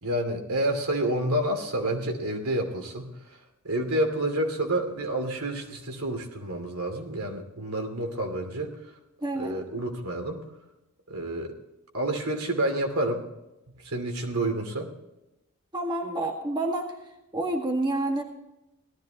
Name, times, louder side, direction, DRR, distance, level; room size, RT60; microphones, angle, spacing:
voice 1, 0.0-3.1 3.6-8.7 9.3-10.4 11.1-11.5 11.9-13.2 13.8-14.9, right 1 dB, 75° right, 4 dB, 2.6 m, -29 dB
voice 2, 9.2-9.6 15.7-16.9 17.3-18.2, right 2 dB, 20° right, 2 dB, 1.8 m, -28 dB
18.0 x 13.5 x 3.0 m, 0.93 s
head